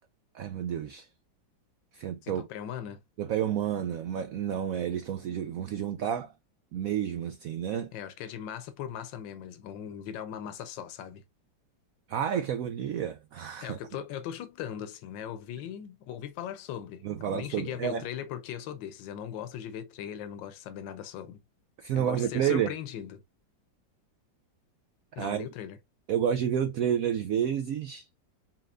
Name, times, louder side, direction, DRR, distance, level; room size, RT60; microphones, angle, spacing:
voice 1, 0.3-1.1 1.9-2.5 3.2-6.3 6.7-7.9 12.1-13.8 17.0-18.1 21.8-22.7 25.2-25.5 26.1-28.1, right 9 dB, 90° right, 0.7 m, -30 dB
voice 2, 2.2-3.0 7.9-11.2 13.6-17.0 17.3-21.4 21.9-23.2 25.1-25.8, left 9 dB, 80° left, 1.4 m, -39 dB
4.3 x 3.7 x 2.4 m
omnidirectional pair, 2.0 m